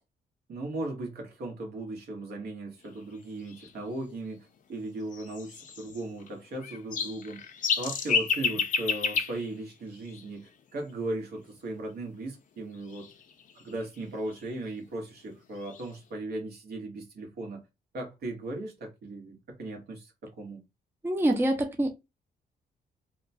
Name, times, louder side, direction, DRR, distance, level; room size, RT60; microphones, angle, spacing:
voice 1, 0.5-7.4 7.8-13.1 13.5-17.6 17.9-20.6, right 2 dB, 75° right, 1.3 m, -37 dB
sound 1, 3.1-3.2 3.4-3.7 5.1-6.3 6.6-10.5 12.7-14.5 15.2-15.3 15.6-15.9, left 6 dB, 50° left, 0.5 m, -32 dB
voice 2, 21.0-21.9, right 1 dB, 15° right, 0.5 m, -25 dB
2.8 x 2.2 x 2.6 m
cardioid pair, 130°, 17 cm